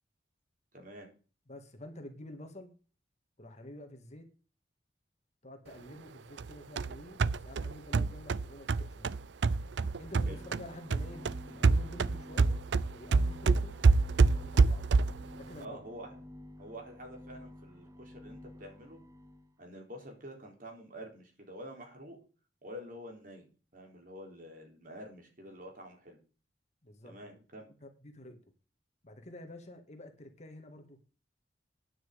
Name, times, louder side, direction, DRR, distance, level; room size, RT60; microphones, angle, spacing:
voice 1, 0.7-1.1 10.3-10.4 15.6-16.2 16.6-19.0 19.6-22.2 22.6-23.5 23.7-26.2 27.0-27.7, equal, 50° right, 2 dB, 3.9 m, -47 dB
voice 2, 1.5-2.7 3.4-4.3 5.4-9.2 10.0-12.6 12.9-13.9 14.3-14.9 15.4-15.8 26.8-27.4 27.8-28.4 29.0-31.0, left 1 dB, 40° left, 5 dB, 2.0 m, -49 dB
sound 1, 6.4-10.7 10.9-15.3, right 4 dB, 80° right, 0.5 m, -27 dB
sound 2, 9.9-19.5, left 1 dB, 20° right, 1.1 m, -51 dB
9.7 x 6.1 x 8.6 m, 0.36 s
head